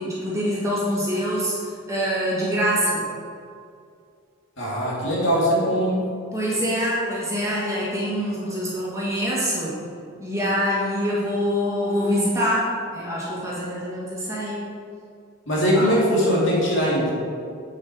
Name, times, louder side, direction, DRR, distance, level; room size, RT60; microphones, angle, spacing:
voice 1, 0.0-1.6 1.9-3.1 6.3-9.8 10.2-14.7, equal, 15° right, -7 dB, 2.1 m, -25 dB
voice 2, 4.6-6.0 15.5-17.1, equal, 60° left, -5 dB, 2.5 m, -21 dB
8.0 x 7.5 x 4.8 m, 2.3 s
head